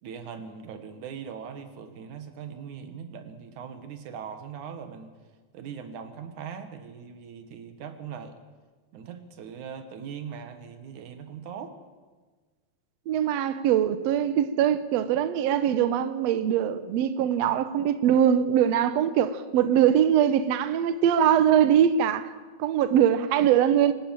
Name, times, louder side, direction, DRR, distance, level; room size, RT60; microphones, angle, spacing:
voice 1, 0.0-5.1 5.5-8.4 8.9-11.8, right 7 dB, 60° right, 2.7 m, -40 dB
voice 2, 13.1-22.3 22.6-23.9, right 9 dB, 90° right, 1.4 m, -22 dB
24.5 x 12.0 x 9.1 m
omnidirectional pair, 4.3 m